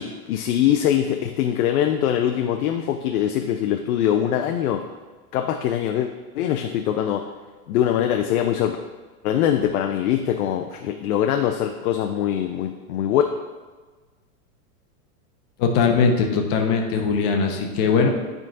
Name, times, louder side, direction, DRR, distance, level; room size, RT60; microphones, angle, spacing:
voice 1, 0.0-4.8 5.3-6.1 6.4-7.3 7.7-8.8 9.2-13.2, left 10 dB, 70° left, 4 dB, 0.6 m, -22 dB
voice 2, 15.6-18.1, left 5 dB, 35° left, 3 dB, 0.8 m, -20 dB
10.0 x 3.8 x 2.6 m, 1.3 s
supercardioid pair, 150°, 46 cm